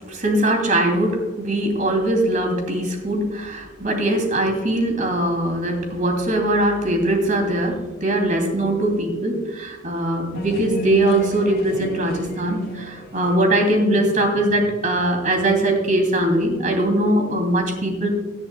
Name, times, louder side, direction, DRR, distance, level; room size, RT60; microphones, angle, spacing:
voice 1, 0.1-18.1, right 1 dB, 45° right, 3 dB, 2.9 m, -21 dB
sound 1, 10.3-15.2, equal, 55° left, 2.2 m, -33 dB
18.0 x 10.5 x 2.3 m, 1.3 s
head